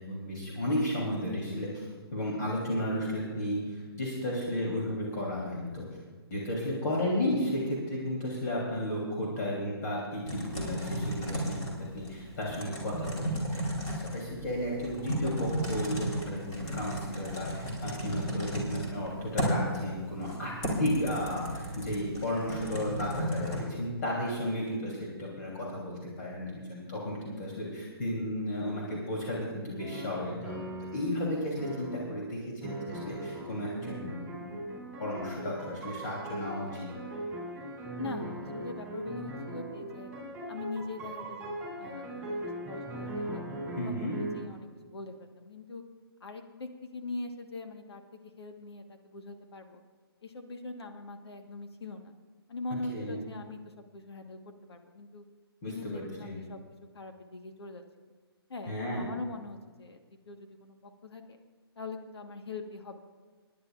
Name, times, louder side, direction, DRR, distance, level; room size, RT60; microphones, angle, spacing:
voice 1, 0.0-1.8 2.1-5.8 6.3-20.5 20.8-30.6 30.9-34.7 35.0-36.9 43.8-44.2 52.9-53.2 55.6-56.3 58.7-59.0, left 1 dB, 40° left, -4 dB, 3.0 m, -33 dB
Typing, 10.2-23.6, equal, 25° left, 3.0 m, -34 dB
sound 1, 29.8-31.1 31.6-32.3 32.6-44.5, right 1 dB, 5° right, 3.2 m, -39 dB
voice 2, 38.0-40.1 40.5-43.4 43.8-45.8 46.2-49.8 50.2-52.1 52.5-53.6 53.9-55.2 55.6-56.6 56.9-57.8 58.5-60.0 60.3-61.2 61.8-63.0, left 3 dB, 75° left, 5 dB, 1.4 m, -42 dB
27.5 x 10.0 x 2.4 m, 1.5 s
hypercardioid pair, 150°, 13 cm